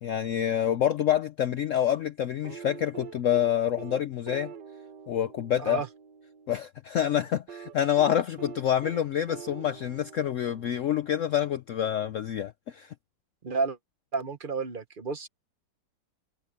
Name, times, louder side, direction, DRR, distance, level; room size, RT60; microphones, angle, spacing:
voice 1, 0.0-4.5 5.1-5.8 6.5-12.9, left 10 dB, 70° left, 0.7 m, -27 dB
sound 1, 2.4-6.5 7.5-11.1 12.5-12.6, right 7 dB, 70° right, 1.7 m, -45 dB
voice 2, 13.4-13.8 14.1-15.3, right 4 dB, 40° right, 0.8 m, -31 dB
omnidirectional pair, 1.9 m